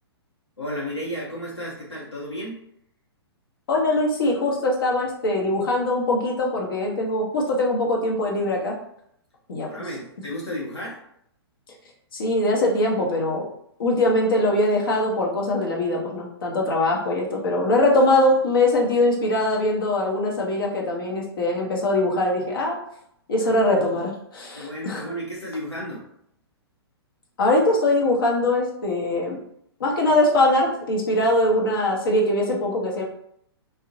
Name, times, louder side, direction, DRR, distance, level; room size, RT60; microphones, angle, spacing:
voice 1, 0.6-2.6 9.7-11.0 23.4-24.0 24.5-26.1, equal, 85° left, -5 dB, 0.7 m, -33 dB
voice 2, 3.7-8.7 9.5-9.7 12.1-13.5 13.8-22.8 23.3-25.1 27.4-29.4 29.8-33.0, left 1 dB, 55° left, -1 dB, 0.8 m, -22 dB
2.7 x 2.1 x 2.6 m, 0.71 s
figure-of-eight pair, 115°, 14 cm